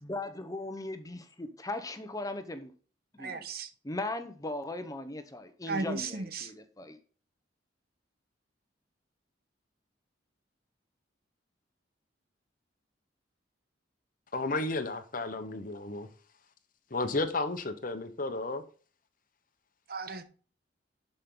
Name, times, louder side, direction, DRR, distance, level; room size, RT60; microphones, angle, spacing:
voice 1, 0.0-2.7 3.2-3.4 3.8-7.0, left 2 dB, 20° left, 1.0 m, -38 dB
voice 2, 3.2-3.7 5.7-6.5 19.9-20.3, right 3 dB, 55° right, 1.1 m, -35 dB
voice 3, 14.3-16.1 16.9-18.6, left 2 dB, 45° left, 1.0 m, -33 dB
11.5 x 5.4 x 3.9 m
head